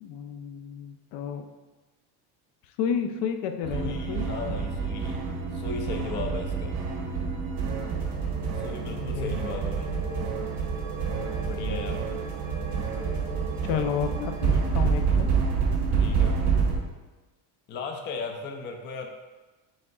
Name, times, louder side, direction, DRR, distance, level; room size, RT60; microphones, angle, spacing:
voice 1, 0.0-1.5 2.8-4.3 8.8-9.4 13.6-15.3, left 7 dB, 75° left, 6 dB, 0.6 m, -31 dB
sound 1, 3.6-16.8, right 5 dB, 75° right, 1.1 m, -28 dB
voice 2, 3.7-5.2 5.5-6.7 8.5-10.0 11.4-12.0 15.9-16.4 17.7-19.1, left 4 dB, 30° left, 3 dB, 0.4 m, -36 dB
6.3 x 3.7 x 2.3 m, 1.2 s
cardioid pair, 140°, 41 cm